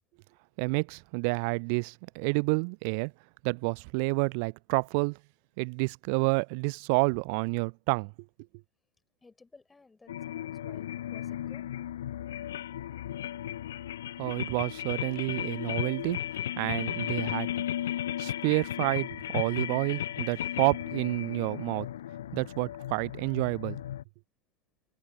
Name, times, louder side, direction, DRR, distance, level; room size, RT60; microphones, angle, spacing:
voice 1, 0.6-3.1 3.4-5.2 5.6-8.1 14.2-16.2 16.6-17.6 18.2-21.9 22.3-23.8, right 36 dB, 45° right, 0.6 m, -29 dB
voice 2, 9.2-11.7 19.7-19.9, left 3 dB, 10° left, 5.8 m, -57 dB
sound 1, 10.1-24.0, left 11 dB, 60° left, 0.4 m, -35 dB
figure-of-eight pair, 90°, 0 cm